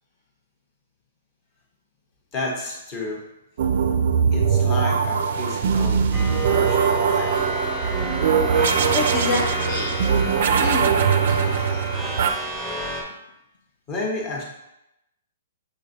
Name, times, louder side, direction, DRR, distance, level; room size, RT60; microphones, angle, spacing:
voice 1, 2.3-3.2 4.3-7.6 13.9-14.4, left 2 dB, 25° left, -1 dB, 1.0 m, -31 dB
sound 1, 3.6-12.3, right 6 dB, 60° right, 0.4 m, -21 dB
sound 2, 6.1-13.0, right 1 dB, 5° right, 0.7 m, -30 dB
voice 2, 8.9-10.2 10.6-10.9 11.3-11.8 12.9-13.0, left 3 dB, 50° left, -1 dB, 0.6 m, -28 dB
6.3 x 3.1 x 2.6 m, 0.86 s
hypercardioid pair, 155°, 0 cm